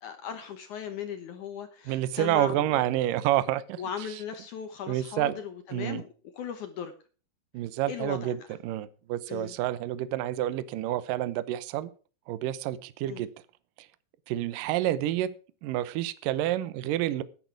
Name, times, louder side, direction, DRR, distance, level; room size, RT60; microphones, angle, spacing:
voice 1, 0.0-2.8 3.8-6.9 7.9-8.6 9.3-9.6 13.1-13.2, left 8 dB, 75° left, 1.8 m, -38 dB
voice 2, 1.9-3.8 4.9-5.3 5.7-6.0 7.5-8.4 8.6-11.9 12.3-13.3 14.3-15.3 15.6-17.2, right 13 dB, 85° right, 1.9 m, -28 dB
13.5 x 11.0 x 4.7 m
omnidirectional pair, 5.1 m